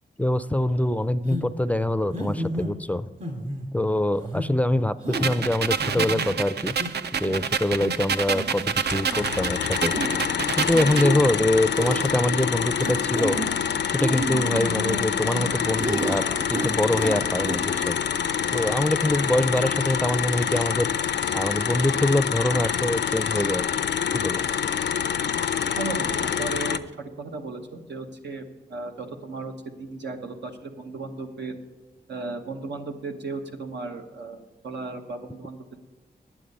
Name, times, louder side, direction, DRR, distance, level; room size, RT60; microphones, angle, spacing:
voice 1, 0.2-3.1 3.7-6.8 7.2-9.9 10.6-13.4 13.9-18.0 18.5-20.9 21.3-23.7 24.1-24.4, left 1 dB, 10° left, 14 dB, 0.4 m, -24 dB
sound 1, 1.3-1.5 2.1-2.7 3.2-3.7 4.2-4.5 5.0-5.3 5.8-6.3 6.8-6.9 7.2-7.5 7.8-7.9 8.3-8.7 9.0-9.2 9.9-10.1 10.7-11.2 11.7-12.1 12.8-13.5 14.0-15.5 15.8-16.2 16.5-17.2 17.4-17.6, right 1 dB, 45° right, 2.6 m, -30 dB
sound 2, 5.1-11.1, right 6 dB, 70° right, 0.5 m, -28 dB
sound 3, 8.9-26.8, left 8 dB, 80° left, 0.4 m, -26 dB
voice 2, 25.7-28.4 28.7-29.5 29.8-31.6 32.1-35.8, right 3 dB, 90° right, 4 dB, 1.0 m, -35 dB
9.9 x 7.3 x 5.3 m, 1.3 s
cardioid pair, 65°, 18 cm